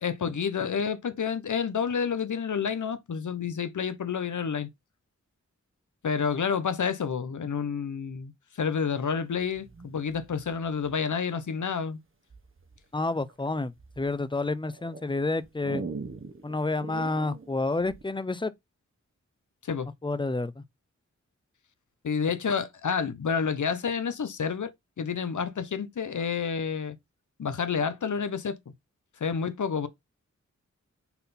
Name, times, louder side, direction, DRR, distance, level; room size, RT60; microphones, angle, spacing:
voice 1, 0.0-4.7 6.0-8.3 8.6-12.0 19.6-19.9 22.0-27.0 27.4-28.6 29.2-29.9, left 6 dB, 80° left, 0.8 m, -29 dB
sound 1, 9.4-11.3 12.3-12.8 13.3-14.1 14.7-18.1, right 4 dB, 45° right, 1.1 m, -42 dB
voice 2, 12.9-15.8 16.4-18.5 20.0-20.6, left 2 dB, 15° left, 0.6 m, -29 dB
5.8 x 3.9 x 4.2 m
wide cardioid pair, 65°, 30 cm